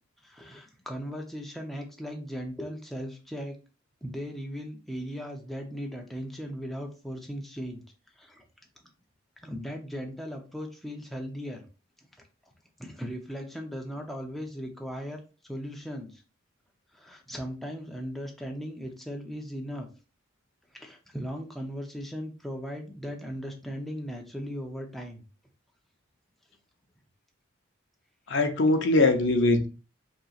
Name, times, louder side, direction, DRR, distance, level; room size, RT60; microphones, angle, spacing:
voice 1, 0.2-3.6 4.0-7.8 8.2-8.4 9.4-11.7 12.8-16.2 16.9-19.9 20.7-25.2, equal, ahead, 0.6 m, -37 dB
voice 2, 28.3-29.7, left 2 dB, 60° left, 0.7 m, -22 dB
5.4 x 3.0 x 2.4 m
head